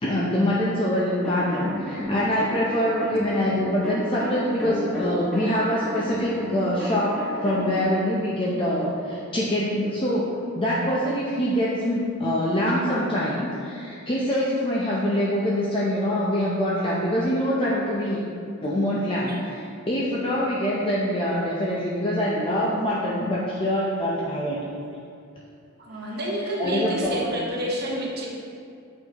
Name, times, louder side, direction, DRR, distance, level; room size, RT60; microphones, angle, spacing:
voice 1, 0.0-10.3 10.6-18.2 18.6-24.6 26.6-27.2, equal, 25° left, -6 dB, 0.6 m, -24 dB
sound 1, 1.2-7.8, equal, 5° left, 1.1 m, -33 dB
voice 2, 25.8-28.3, right 1 dB, 50° right, -3 dB, 1.1 m, -29 dB
8.0 x 4.6 x 2.9 m, 2.4 s
head